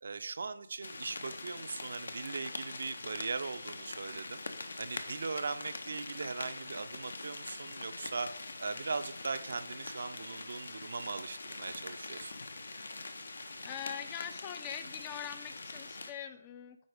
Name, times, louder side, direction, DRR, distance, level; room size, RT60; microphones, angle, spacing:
voice 1, 0.0-8.3 8.6-12.3, right 4 dB, 55° right, 10 dB, 0.5 m, -39 dB
sound 1, 0.8-16.1, left 3 dB, 60° left, 0.9 m, -44 dB
voice 2, 13.6-16.8, left 9 dB, 20° left, 9 dB, 0.5 m, -42 dB
9.5 x 4.2 x 4.8 m, 0.70 s
figure-of-eight pair, 155°, 0 cm